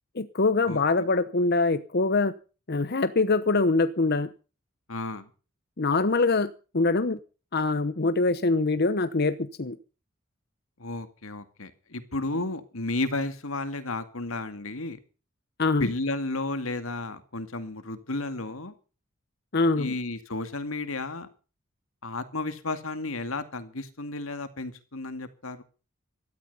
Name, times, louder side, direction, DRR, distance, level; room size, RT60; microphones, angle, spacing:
voice 1, 0.1-2.3 2.7-4.3 5.8-7.2 7.5-9.8 15.6-15.9 19.5-19.9, left 3 dB, 50° left, 13 dB, 0.9 m, -24 dB
voice 2, 4.9-5.3 10.8-15.0 15.8-18.7 19.8-21.3 22.0-25.6, left 2 dB, 85° left, 10 dB, 2.2 m, -33 dB
16.5 x 13.5 x 5.5 m, 0.36 s
head